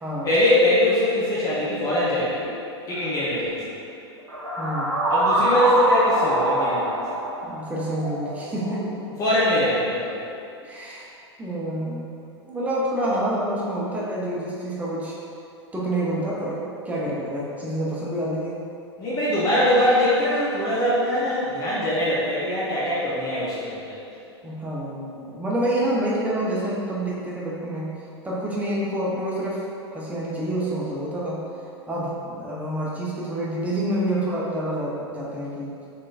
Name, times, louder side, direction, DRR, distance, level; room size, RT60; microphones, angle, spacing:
voice 1, 0.2-2.5 2.9-3.7 5.1-6.9 9.2-10.2 19.0-24.0, left 1 dB, 25° left, -8 dB, 0.7 m, -22 dB
sound 1, 2.9-3.0 4.3-8.8, right 1 dB, 75° right, 0.8 m, -24 dB
voice 2, 4.6-4.9 7.5-9.2 10.6-11.1 11.4-12.1 12.5-15.2 15.7-16.6 16.8-18.6 24.4-27.9 28.2-29.6 29.9-31.4 31.9-35.8, right 1 dB, 10° right, -5 dB, 0.7 m, -27 dB
3.7 x 3.7 x 2.5 m, 2.6 s
figure-of-eight pair, 100°, 15 cm